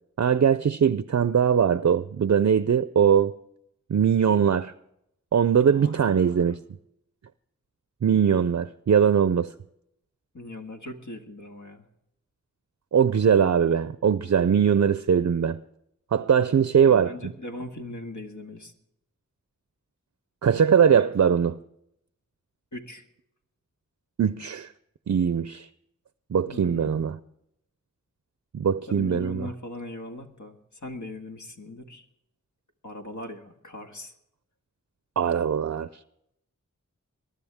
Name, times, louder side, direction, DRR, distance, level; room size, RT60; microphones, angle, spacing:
voice 1, 0.2-3.3 3.9-4.7 5.3-6.6 8.0-9.5 12.9-15.6 16.1-17.1 20.4-21.6 24.2-24.7 25.1-25.7 26.3-27.2 28.5-29.5 35.2-35.9, right 7 dB, 55° right, 0.5 m, -21 dB
voice 2, 5.6-6.5 10.3-11.9 16.9-18.7 22.7-23.1 26.5-26.9 28.9-32.1 32.8-34.1, left 2 dB, 70° left, 1.9 m, -39 dB
22.0 x 12.5 x 3.5 m
wide cardioid pair, 55°, 31 cm